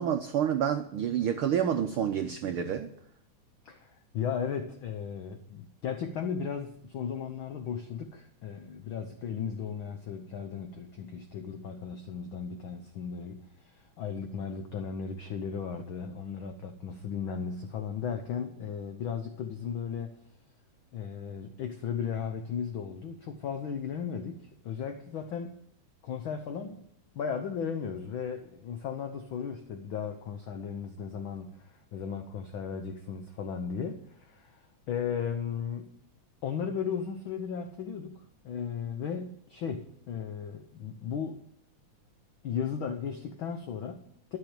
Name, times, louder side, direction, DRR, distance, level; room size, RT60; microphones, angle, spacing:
voice 1, 0.0-2.9, right 9 dB, 85° right, 6 dB, 1.1 m, -28 dB
voice 2, 3.6-20.2 20.9-25.6 26.0-26.9 27.1-35.9 36.4-41.4 42.4-44.4, left 7 dB, 65° left, 6 dB, 1.3 m, -36 dB
13.0 x 6.9 x 9.1 m, 0.70 s
omnidirectional pair, 3.4 m